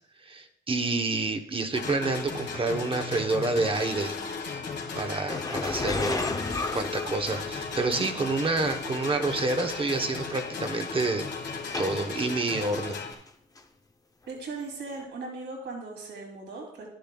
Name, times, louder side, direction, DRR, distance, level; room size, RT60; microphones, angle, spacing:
voice 1, 0.2-4.1 4.9-6.3 6.7-13.0, right 3 dB, 30° right, 6 dB, 0.9 m, -28 dB
sound 1, 1.7-13.1, left 5 dB, 65° left, 1.6 m, -36 dB
sound 2, 5.3-7.9 8.7-8.8 9.7-9.8 10.0-10.4 10.9-12.3 12.7-13.3 13.6-13.7 14.9-15.0, left 3 dB, 20° left, 0.7 m, -33 dB
voice 2, 14.3-16.9, right 3 dB, 75° right, 0 dB, 2.7 m, -38 dB
11.5 x 10.5 x 2.3 m, 0.70 s
cardioid pair, 105°, 19 cm